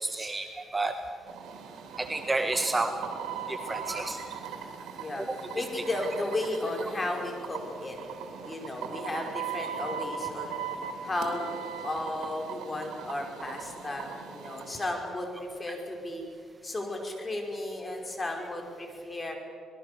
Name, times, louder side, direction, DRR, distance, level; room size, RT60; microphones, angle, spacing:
voice 1, 0.0-0.9 2.0-3.0 3.5-4.2 5.3-5.6, right 2 dB, 20° right, 6 dB, 1.6 m, -30 dB
sound 1, 1.3-14.9, right 7 dB, 85° right, 3.5 m, -39 dB
voice 2, 5.5-8.0 8.4-10.6 11.0-11.5 11.8-16.2 16.6-19.4, left 2 dB, 25° left, 2 dB, 5.4 m, -34 dB
26.5 x 21.0 x 7.0 m, 2.4 s
cardioid pair, 90°, 0 cm